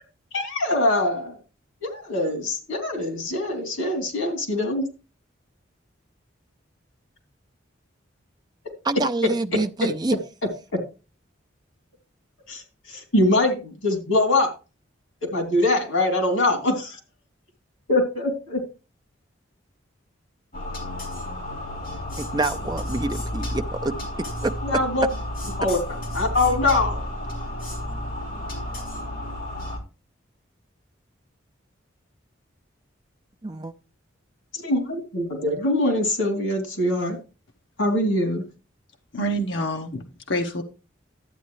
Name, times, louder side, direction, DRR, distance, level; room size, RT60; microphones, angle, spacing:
voice 1, 0.3-1.4 1.8-4.9 12.5-14.5 15.2-17.0 17.9-18.6 24.6-25.1 25.6-25.8 26.1-27.0 34.5-37.2 37.8-38.4, left 2 dB, 90° left, 3.1 m, -23 dB
voice 2, 8.8-10.2 22.2-24.5 33.4-33.7, right 2 dB, 20° right, 0.5 m, -27 dB
sound 1, 20.5-29.8, left 1 dB, 45° left, 3.2 m, -31 dB
voice 3, 39.1-40.6, equal, 65° left, 1.0 m, -27 dB
12.0 x 8.4 x 3.2 m
head